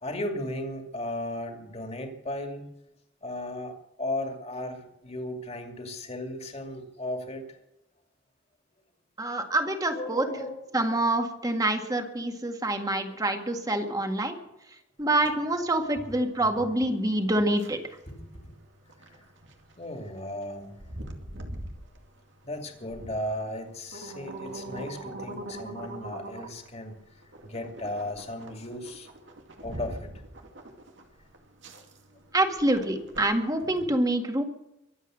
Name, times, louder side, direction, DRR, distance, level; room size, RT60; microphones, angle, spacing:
voice 1, 0.0-2.7 3.2-7.4 9.9-10.6 13.1-13.2 18.1-18.2 19.8-20.7 22.4-26.9 27.4-29.1 29.6-30.1, left 1 dB, 35° left, 4 dB, 2.6 m, -35 dB
voice 2, 9.2-10.3 10.7-14.4 15.0-17.8 32.3-34.4, right 1 dB, 20° right, 5 dB, 1.9 m, -26 dB
sound 1, 15.0-33.8, right 1 dB, 85° right, 2.4 m, -44 dB
23.5 x 8.1 x 6.4 m, 0.88 s
head